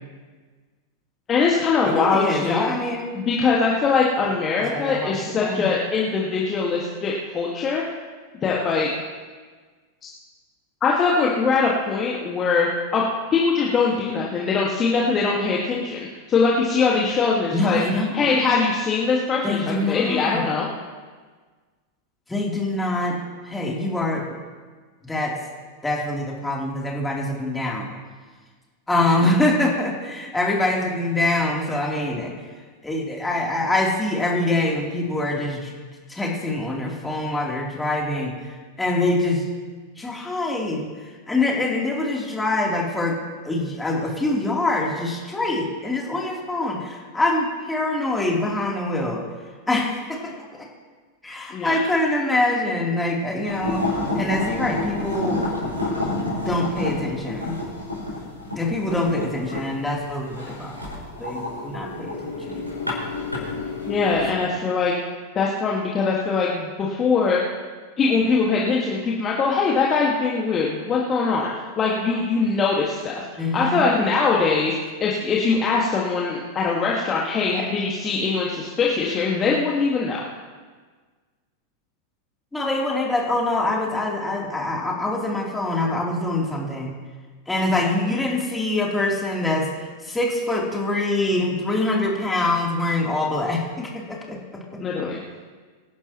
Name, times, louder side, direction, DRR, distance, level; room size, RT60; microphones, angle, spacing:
voice 1, 1.3-2.7 3.1-7.8 8.4-8.9 10.8-13.0 13.3-17.8 18.1-20.7 51.5-51.8 63.9-64.9 65.4-67.4 68.0-73.2 73.5-74.7 75.0-80.2 94.8-95.2, left 4 dB, 25° left, -3 dB, 1.9 m, -22 dB
voice 2, 1.8-3.2 4.7-5.7 17.5-18.4 19.4-20.4 22.3-23.2 23.4-24.2 25.0-25.3 25.8-27.9 28.9-32.3 32.8-35.7 36.1-39.4 40.0-40.9 41.3-43.2 43.4-49.2 49.7-50.7 51.2-53.8 54.2-55.5 56.5-57.6 58.5-60.9 61.2-62.2 62.5-62.7 73.4-73.8 82.5-86.9 87.5-94.4 94.7-94.8, left 2 dB, 10° left, -3 dB, 3.5 m, -24 dB
sound 1, 53.4-64.3, left 2 dB, 90° left, 5.5 m, -29 dB
25.5 x 11.5 x 3.1 m, 1.5 s
figure-of-eight pair, 90°, 0 cm